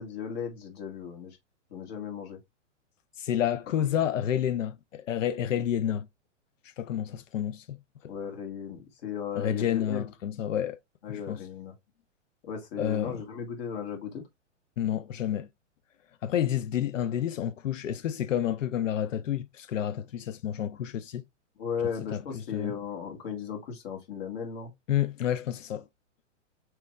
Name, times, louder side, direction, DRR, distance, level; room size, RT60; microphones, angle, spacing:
voice 1, 0.0-1.4 1.7-2.4 5.8-6.0 8.1-10.1 11.0-11.7 12.4-14.2 21.6-24.7, left 7 dB, 55° left, 1.8 m, -36 dB
voice 2, 3.2-6.1 6.8-7.8 9.3-10.8 11.1-11.4 12.8-13.2 14.8-15.5 16.2-21.2 22.1-22.2 22.5-22.7 24.9-25.9, left 10 dB, 90° left, 0.5 m, -29 dB
4.5 x 3.3 x 3.2 m
hypercardioid pair, 130°, 37 cm